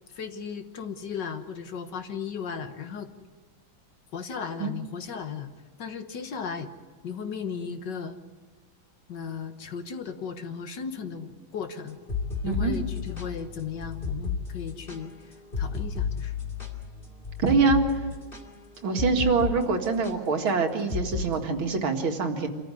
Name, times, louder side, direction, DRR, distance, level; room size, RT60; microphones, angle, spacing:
voice 1, 0.1-3.1 4.1-5.5 5.8-6.7 7.0-8.2 9.1-12.0 12.4-16.3, left 6 dB, 60° left, 7 dB, 1.9 m, -36 dB
sound 1, 11.9-19.6 19.8-20.1 20.9-21.3, left 6 dB, 25° left, 2.7 m, -32 dB
voice 2, 17.4-17.8 18.8-22.5, right 4 dB, 80° right, 4 dB, 2.7 m, -24 dB
26.5 x 14.0 x 9.7 m, 1.4 s
omnidirectional pair, 2.2 m